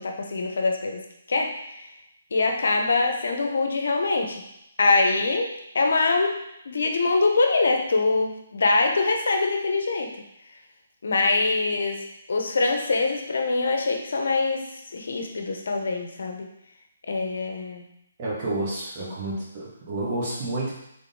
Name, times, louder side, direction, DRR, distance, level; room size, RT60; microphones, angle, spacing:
voice 1, 0.0-1.9 2.3-4.4 4.8-6.4 6.6-10.2 11.0-16.5 17.1-17.8 19.0-19.2, left 3 dB, 70° left, 3 dB, 0.8 m, -24 dB
voice 2, 18.2-20.7, right 2 dB, 35° right, -6 dB, 1.7 m, -30 dB
3.7 x 3.7 x 3.8 m, 0.81 s
hypercardioid pair, 155°, 0 cm